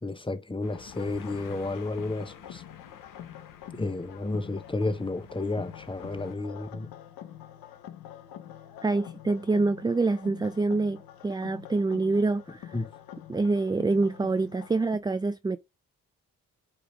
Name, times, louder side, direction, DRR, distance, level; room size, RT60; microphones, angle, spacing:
voice 1, 0.0-2.6 3.7-6.9 12.7-12.9, left 2 dB, 15° left, 1.1 m, -32 dB
sound 1, 0.6-6.3, left 8 dB, 65° left, 1.1 m, -50 dB
sound 2, 1.0-15.0, left 11 dB, 90° left, 0.9 m, -46 dB
voice 2, 8.8-12.7 13.3-15.6, right 3 dB, 10° right, 0.4 m, -26 dB
8.6 x 2.9 x 4.9 m
supercardioid pair, 60°, 34 cm